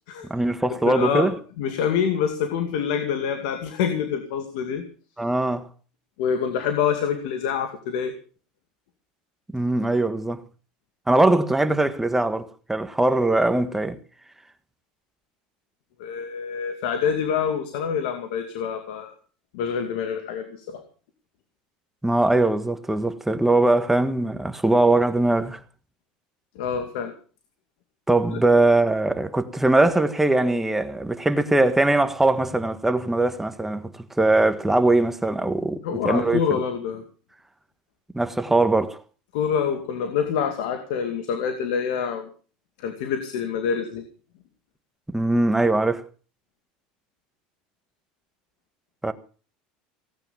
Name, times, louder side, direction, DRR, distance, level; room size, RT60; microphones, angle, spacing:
voice 1, 0.3-1.3 5.2-5.7 9.5-10.4 11.1-14.0 22.0-25.6 28.1-36.4 38.1-39.0 45.1-46.1 49.0-49.1, right 2 dB, 5° right, 1.6 m, -21 dB
voice 2, 0.8-4.8 6.2-8.1 16.0-19.1 19.5-20.8 26.5-27.1 28.3-28.4 35.8-37.0 39.3-42.3 42.8-44.0, left 7 dB, 80° left, 2.4 m, -26 dB
17.5 x 8.9 x 7.2 m
supercardioid pair, 110°, 4 cm